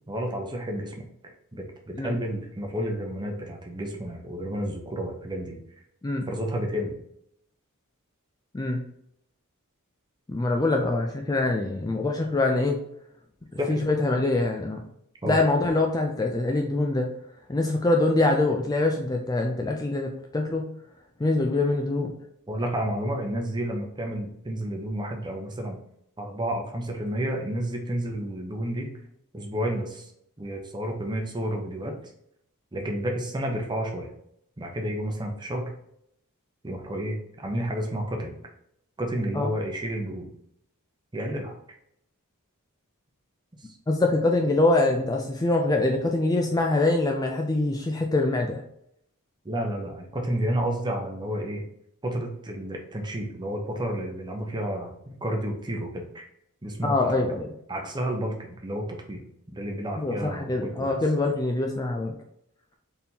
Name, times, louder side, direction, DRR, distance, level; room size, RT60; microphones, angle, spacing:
voice 1, 0.1-1.0 1.5-5.6 6.3-7.0 13.6-13.8 15.2-15.4 22.5-25.8 26.2-28.9 29.3-30.1 30.4-31.9 32.7-34.1 34.6-35.7 36.6-38.4 39.0-40.3 41.1-41.6 49.4-51.6 52.0-56.3 56.6-57.2 57.7-59.2 59.5-60.9, right 1 dB, 20° right, 2 dB, 0.8 m, -31 dB
voice 2, 10.3-12.8 13.7-14.8 15.2-17.1 17.5-20.7 21.2-22.1 39.3-39.5 43.9-48.6 56.8-57.5 60.0-62.1, left 2 dB, 15° left, 2 dB, 0.4 m, -24 dB
4.3 x 3.5 x 2.8 m, 0.74 s
head